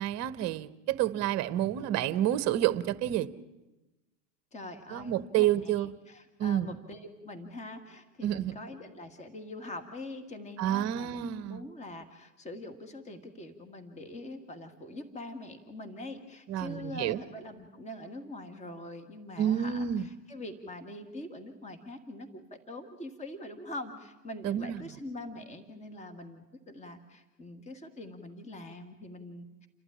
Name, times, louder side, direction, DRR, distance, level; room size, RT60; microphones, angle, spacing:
voice 1, 0.0-3.3 4.9-5.9 6.4-6.7 8.2-8.5 10.6-11.6 16.5-17.2 19.4-20.1 24.4-24.8, right 11 dB, 30° right, 15 dB, 1.1 m, -29 dB
voice 2, 4.5-29.7, left 1 dB, 15° left, 8 dB, 1.9 m, -44 dB
29.5 x 12.0 x 9.9 m, 1.0 s
hypercardioid pair, 120°, 49 cm